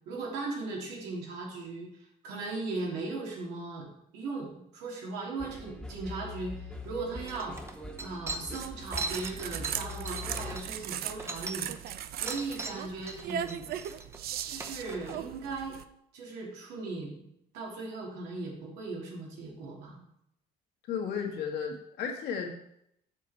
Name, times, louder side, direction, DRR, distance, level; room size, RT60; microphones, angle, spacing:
voice 1, 0.1-7.6 8.0-11.8 12.1-13.7 14.5-15.8 16.1-17.3 17.5-20.0, right 3 dB, 90° right, -2 dB, 2.6 m, -38 dB
sound 1, 5.4-10.6, left 2 dB, 5° left, 1.2 m, -42 dB
sound 2, 6.8-6.9 7.3-11.9 12.3-15.2, right 3 dB, 15° right, 0.8 m, -40 dB
sound 3, 8.6-15.8, right 10 dB, 65° right, 0.5 m, -38 dB
voice 2, 20.9-22.5, left 7 dB, 80° left, 1 dB, 1.8 m, -34 dB
7.3 x 6.7 x 4.2 m, 0.76 s
cardioid pair, 110°, 17 cm